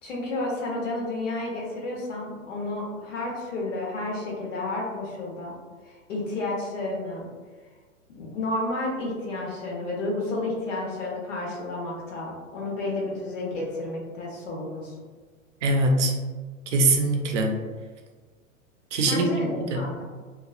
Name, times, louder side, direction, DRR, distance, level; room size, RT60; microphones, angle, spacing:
voice 1, 0.0-5.6 5.8-7.3 8.2-14.9 19.0-20.0, left 2 dB, 65° left, -3 dB, 1.1 m, -31 dB
voice 2, 15.6-16.1 16.7-17.5 18.9-19.9, right 2 dB, 60° right, 2 dB, 0.6 m, -23 dB
3.0 x 2.3 x 2.4 m, 1.4 s
figure-of-eight pair, 105°, 41 cm